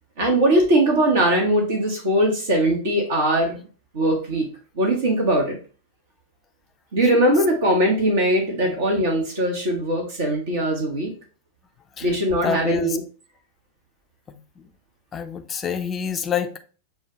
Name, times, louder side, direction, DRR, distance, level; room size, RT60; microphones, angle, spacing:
voice 1, 0.2-3.7 3.9-4.5 4.7-5.6 6.9-11.1 12.0-13.0, right 1 dB, 55° right, 1.2 m, -20 dB
voice 2, 12.0-13.0 14.3-14.6 15.1-16.6, left 7 dB, 25° left, 0.5 m, -28 dB
6.9 x 2.3 x 2.8 m
figure-of-eight pair, 90°, 0 cm